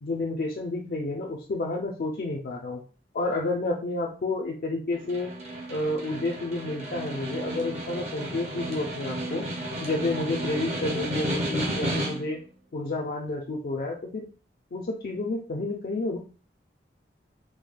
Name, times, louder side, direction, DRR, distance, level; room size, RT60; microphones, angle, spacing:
voice 1, 0.0-2.8 3.1-5.3 5.7-9.4 9.8-12.4 12.7-14.3 14.7-16.2, left 2 dB, 55° left, -1 dB, 0.4 m, -30 dB
Snare drum, 4.9-12.4, right 1 dB, 40° right, 0.8 m, -33 dB
4.8 x 2.2 x 2.2 m, 0.37 s
head